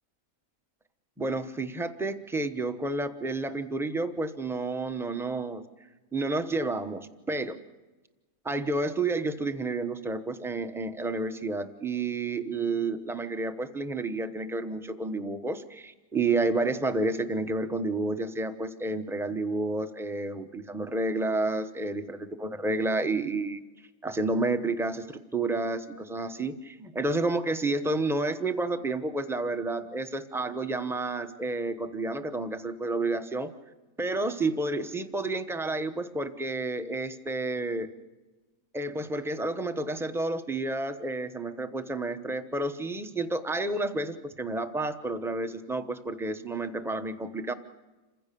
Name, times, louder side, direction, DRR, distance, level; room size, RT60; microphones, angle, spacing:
voice 1, 1.2-5.6 6.1-7.6 8.4-23.6 24.0-33.5 34.0-37.9 38.7-47.5, right 2 dB, ahead, 8 dB, 0.8 m, -30 dB
28.0 x 16.0 x 6.9 m, 1.2 s
omnidirectional pair, 1.5 m